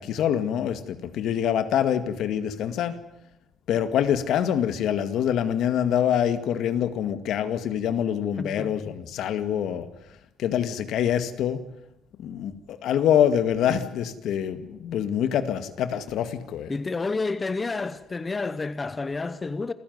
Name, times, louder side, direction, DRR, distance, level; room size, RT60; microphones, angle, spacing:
voice 1, 0.0-3.0 3.7-9.9 10.4-11.6 12.2-16.7, left 9 dB, 70° left, 2.1 m, -25 dB
voice 2, 8.4-8.7 16.7-19.7, left 3 dB, 20° left, 0.9 m, -30 dB
28.0 x 15.0 x 9.5 m
cardioid pair, 165°, 0 cm